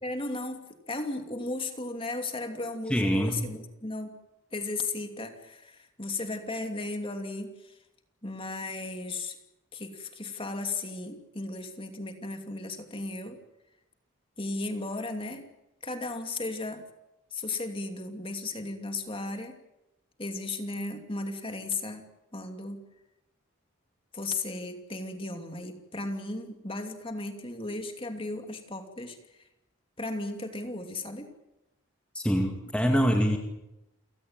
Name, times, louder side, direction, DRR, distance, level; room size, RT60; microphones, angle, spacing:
voice 1, 0.0-4.1 4.5-7.8 8.2-9.4 9.7-13.4 14.4-15.5 15.8-16.9 17.3-19.6 20.2-22.0 22.3-22.8 24.1-29.5 30.0-31.3, left 2 dB, 25° left, 5 dB, 2.7 m, -35 dB
voice 2, 2.9-3.4 32.1-33.4, equal, 5° left, 2 dB, 2.2 m, -25 dB
29.5 x 17.5 x 9.0 m, 0.91 s
head